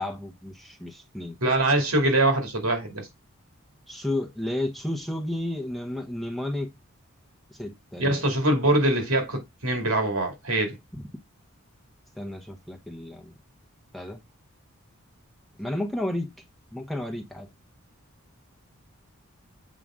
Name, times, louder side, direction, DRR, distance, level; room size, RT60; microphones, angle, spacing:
voice 1, 0.0-1.4 3.9-6.7 7.5-8.2 10.9-11.0 12.2-13.3 13.9-14.2 15.6-16.3 16.7-17.5, left 1 dB, ahead, 1.0 m, -32 dB
voice 2, 1.4-3.1 8.0-10.7, right 1 dB, 75° right, 2.5 m, -23 dB
7.5 x 5.0 x 3.7 m
head